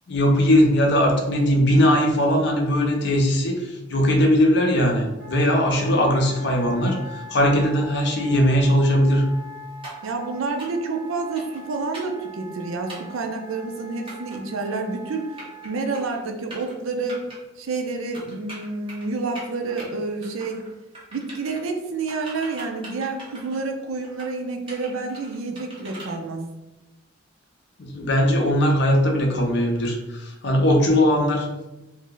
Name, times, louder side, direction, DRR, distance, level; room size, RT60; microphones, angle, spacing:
voice 1, 0.1-9.2 27.8-31.5, equal, 55° left, 2 dB, 0.6 m, -19 dB
Wind instrument woodwind instrument, 5.2-16.0, equal, 60° right, 1.1 m, -42 dB
sound 1, 9.8-10.1 10.6-10.9 11.3-11.6 11.9-12.2 12.9-13.2 14.1-14.4 15.1-15.7 15.9-16.2 16.5-16.7 17.1-17.4 18.1-19.1 19.4-19.9 20.2-20.7 20.9-21.6 22.1-23.6 24.0-24.3 24.7-26.1, right 1 dB, 25° right, 0.9 m, -41 dB
voice 2, 10.0-15.2 15.6-17.2 17.6-20.6 21.1-26.4, right 3 dB, 80° right, 4 dB, 0.5 m, -29 dB
2.7 x 2.1 x 3.7 m, 1.0 s
head